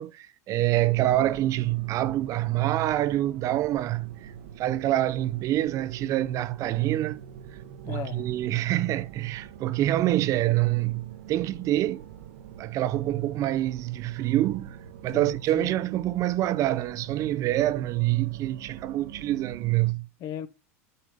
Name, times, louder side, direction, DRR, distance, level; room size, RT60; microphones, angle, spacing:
voice 1, 0.0-4.3 4.6-7.2 7.9-12.0 12.6-14.8 15.0-20.1, right 14 dB, 40° right, 0.5 m, -26 dB
sound 1, 0.7-19.9, right 8 dB, 70° right, 1.0 m, -44 dB
voice 2, 7.9-8.3 15.1-15.7 20.2-20.5, left 10 dB, 45° left, 0.9 m, -36 dB
8.4 x 5.4 x 4.9 m
hypercardioid pair, 100°, 8 cm